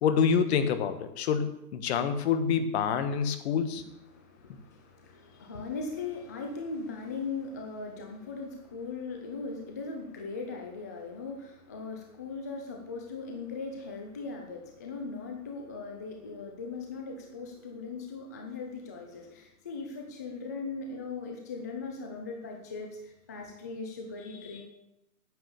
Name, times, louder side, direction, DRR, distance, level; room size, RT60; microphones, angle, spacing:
voice 1, 0.0-3.8, left 7 dB, 45° left, 10 dB, 1.4 m, -27 dB
voice 2, 4.1-24.6, left 4 dB, 15° left, 2 dB, 0.4 m, -39 dB
9.5 x 8.8 x 6.9 m, 0.87 s
hypercardioid pair, 130°, 46 cm